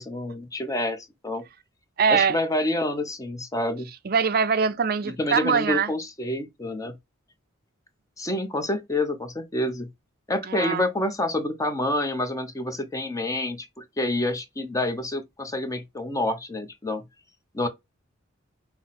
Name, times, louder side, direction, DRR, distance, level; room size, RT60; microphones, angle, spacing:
voice 1, 0.0-1.4 2.1-3.9 5.0-6.9 8.2-9.9 10.3-17.0 17.5-17.7, left 1 dB, 15° left, 0.8 m, -28 dB
voice 2, 2.0-2.4 4.0-5.9 10.5-10.8, right 6 dB, 50° right, 0.5 m, -23 dB
5.7 x 2.1 x 4.0 m
head